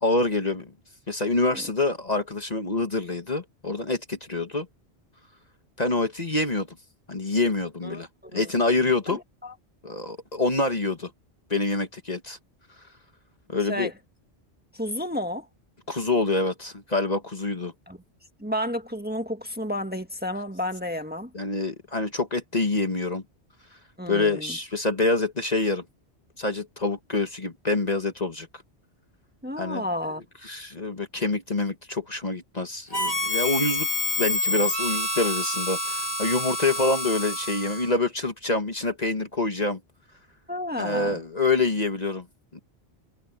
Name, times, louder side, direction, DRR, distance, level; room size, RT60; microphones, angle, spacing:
voice 1, 0.0-0.7 1.1-4.7 5.8-6.7 7.1-9.2 9.8-11.1 11.5-12.4 13.5-13.9 15.9-17.7 21.3-23.2 24.1-25.8 26.4-28.5 29.6-29.8 30.4-33.9 34.2-39.8 40.8-42.2 42.5-42.6, left 3 dB, 40° left, 1.7 m, -26 dB
voice 2, 7.8-8.5 9.1-9.5 13.7-13.9 14.7-15.5 17.9-18.0 18.4-21.3 24.0-24.6 29.4-30.2 40.5-41.2, left 1 dB, 10° right, 1.6 m, -31 dB
Harmonica, 32.9-38.0, left 1 dB, 75° left, 5.7 m, -28 dB
omnidirectional pair, 1.1 m